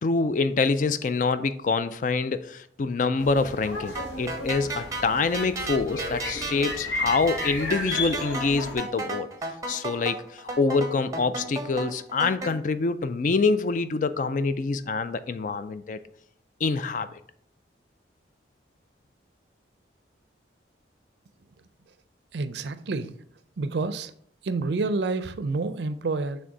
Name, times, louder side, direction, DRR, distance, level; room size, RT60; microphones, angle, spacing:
voice 1, 0.0-9.3 9.7-16.0 16.6-17.2, left 4 dB, 45° left, 12 dB, 0.3 m, -26 dB
sound 1, 3.2-8.8, left 2 dB, 85° left, 1.1 m, -34 dB
sound 2, 3.9-12.5, right 2 dB, 20° right, 0.6 m, -34 dB
voice 2, 22.3-23.2 23.6-24.1 24.4-26.4, right 3 dB, 70° right, 12 dB, 0.5 m, -28 dB
6.4 x 3.3 x 4.6 m, 0.65 s
head